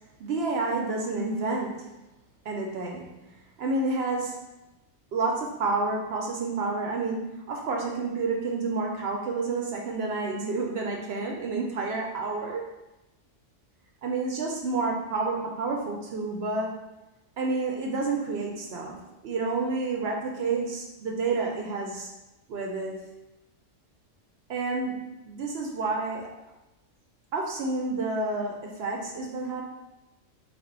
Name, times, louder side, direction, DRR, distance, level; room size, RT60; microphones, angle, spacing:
voice 1, 0.2-1.9 2.5-3.2 3.6-4.5 5.1-12.6 14.0-16.7 17.4-22.1 22.5-23.1 24.5-26.3 27.3-29.6, right 3 dB, 65° right, 0 dB, 0.7 m, -29 dB
3.4 x 2.4 x 3.8 m, 0.98 s
omnidirectional pair, 1.3 m